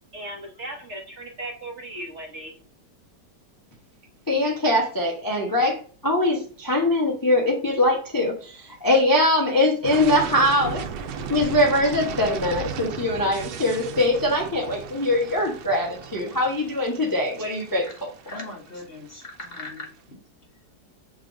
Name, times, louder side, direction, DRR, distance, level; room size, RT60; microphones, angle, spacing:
voice 1, 0.1-2.5, right 1 dB, 50° right, 2 dB, 1.1 m, -37 dB
voice 2, 4.3-10.8 11.2-18.4, left 1 dB, 15° left, -1 dB, 0.8 m, -22 dB
sound 1, 9.8-19.7, right 6 dB, 85° right, 1.4 m, -35 dB
voice 3, 18.2-20.2, left 2 dB, 35° left, 0 dB, 1.3 m, -39 dB
5.4 x 3.9 x 5.0 m, 0.41 s
omnidirectional pair, 1.9 m